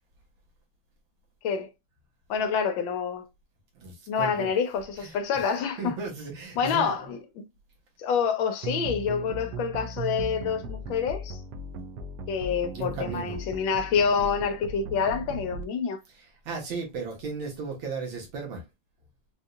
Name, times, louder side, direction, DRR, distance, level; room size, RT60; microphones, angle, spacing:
voice 1, 2.3-3.3 4.1-5.9 6.6-7.2 8.0-11.4 12.3-16.0, left 6 dB, 75° left, 1.2 m, -27 dB
voice 2, 3.8-4.5 5.0-5.2 5.8-6.9 12.7-13.4 16.1-18.6, right 4 dB, 70° right, 2.0 m, -35 dB
sound 1, 8.6-15.6, right 2 dB, 85° right, 0.9 m, -37 dB
4.2 x 2.7 x 2.3 m
omnidirectional pair, 2.3 m